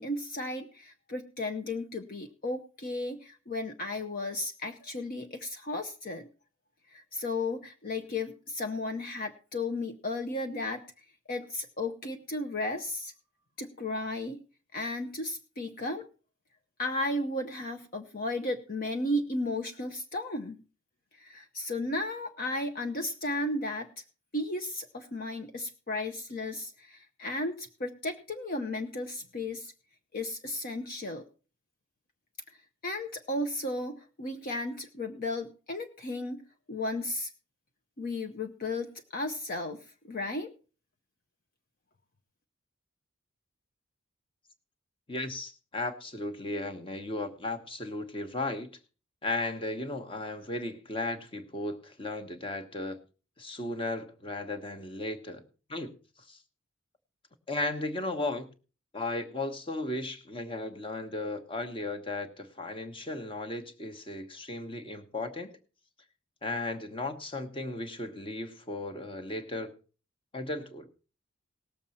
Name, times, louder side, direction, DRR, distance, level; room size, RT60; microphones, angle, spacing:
voice 1, 0.0-6.3 6.9-10.8 11.3-13.1 13.6-14.4 14.7-16.0 16.8-20.6 21.1-23.9 24.3-29.7 30.1-31.2 32.8-36.4 36.7-37.3 38.0-39.8 40.1-40.5, left 2 dB, 45° left, 4 dB, 0.9 m, -34 dB
voice 2, 45.1-48.7 49.2-53.0 53.4-55.4 55.7-55.9 56.3-56.4 57.5-58.5 58.9-65.5 66.4-69.7 70.3-70.9, left 2 dB, 25° left, 5 dB, 1.3 m, -35 dB
18.5 x 7.2 x 4.2 m, 0.35 s
head